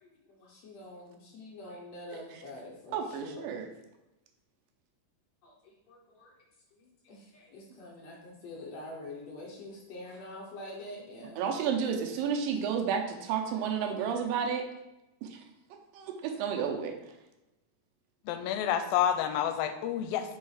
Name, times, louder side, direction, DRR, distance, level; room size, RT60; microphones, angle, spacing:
voice 1, 0.0-3.6 5.4-6.3 6.7-11.4, left 1 dB, 70° left, -1 dB, 1.6 m, -46 dB
voice 2, 2.9-3.7 11.4-14.7 15.2-15.3 15.9-16.9, right 7 dB, 85° right, 3 dB, 2.4 m, -31 dB
voice 3, 18.3-20.4, left 9 dB, 85° left, 9 dB, 2.3 m, -29 dB
5.5 x 4.5 x 4.9 m, 0.94 s
omnidirectional pair, 4.1 m